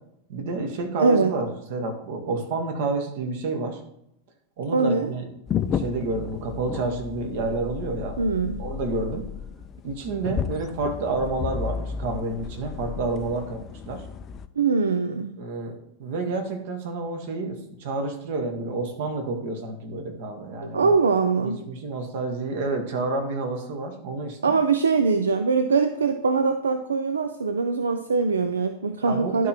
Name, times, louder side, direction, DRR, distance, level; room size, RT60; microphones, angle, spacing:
voice 1, 0.3-3.8 4.6-8.2 8.6-9.3 9.8-14.1 15.4-20.9 21.4-24.6 29.0-29.5, right 3 dB, 50° right, 4 dB, 1.4 m, -29 dB
voice 2, 1.0-1.3 4.7-5.1 8.2-8.6 14.6-15.3 20.7-21.6 24.4-29.5, right 4 dB, 70° right, 9 dB, 0.4 m, -22 dB
sound 1, 5.5-14.5, left 7 dB, 25° left, 0.4 m, -33 dB
11.0 x 4.6 x 4.3 m, 0.79 s
figure-of-eight pair, 90°, 0 cm